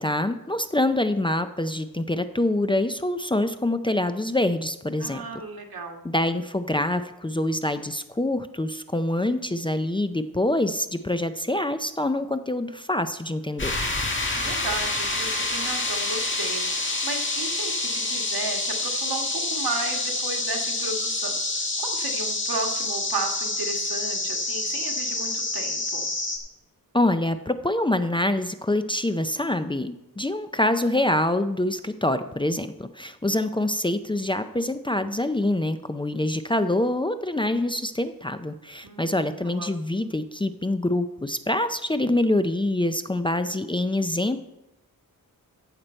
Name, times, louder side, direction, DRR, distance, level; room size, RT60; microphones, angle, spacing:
voice 1, 0.0-5.2 6.0-13.7 26.9-44.5, left 1 dB, 15° left, 9 dB, 0.4 m, -25 dB
voice 2, 5.0-6.0 14.3-26.1 38.8-39.7, right 3 dB, 85° right, 2 dB, 1.7 m, -34 dB
sound 1, 13.6-26.4, left 2 dB, 35° left, 1.7 m, -27 dB
15.0 x 6.6 x 4.4 m, 0.93 s
wide cardioid pair, 135°, 35 cm